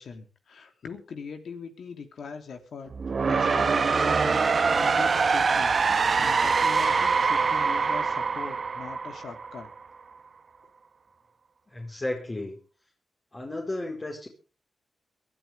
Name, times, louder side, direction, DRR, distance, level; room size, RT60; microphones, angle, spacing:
voice 1, 0.0-2.9 3.3-4.4 4.7-9.7, left 6 dB, 75° left, 6 dB, 3.2 m, -41 dB
sound 1, 2.9-9.8, right 5 dB, 55° right, 1.4 m, -24 dB
voice 2, 11.7-12.6 13.3-14.3, left 2 dB, 35° left, -1 dB, 4.9 m, -33 dB
22.5 x 12.5 x 3.6 m, 0.36 s
cardioid pair, 55°, 0 cm